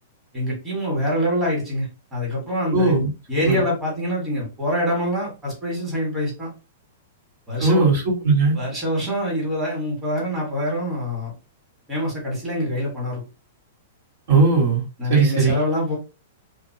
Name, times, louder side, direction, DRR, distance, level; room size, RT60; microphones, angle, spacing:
voice 1, 0.3-2.9 3.3-6.5 7.5-7.9 8.5-11.3 11.9-13.2 15.0-16.0, equal, 10° right, -4 dB, 1.5 m, -25 dB
voice 2, 2.7-3.1 3.3-3.6 7.6-8.6 14.3-14.8 15.1-15.5, right 3 dB, 65° right, -3 dB, 1.7 m, -18 dB
2.6 x 2.6 x 2.8 m, 0.29 s
hypercardioid pair, 145°, 0 cm